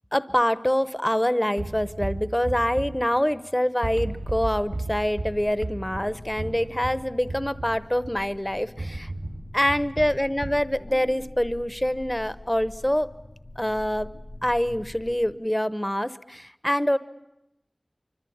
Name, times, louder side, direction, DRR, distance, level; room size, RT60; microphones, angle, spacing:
voice 1, 0.1-9.1 9.5-13.1 13.6-17.0, equal, 15° left, 15 dB, 0.9 m, -25 dB
sound 1, 1.6-3.5 3.8-8.3 8.8-10.7, right 2 dB, 90° right, 2.1 m, -35 dB
sound 2, 4.1-15.3, left 2 dB, 65° left, 2.8 m, -44 dB
25.5 x 24.5 x 8.7 m, 0.87 s
wide cardioid pair, 50°, 0 cm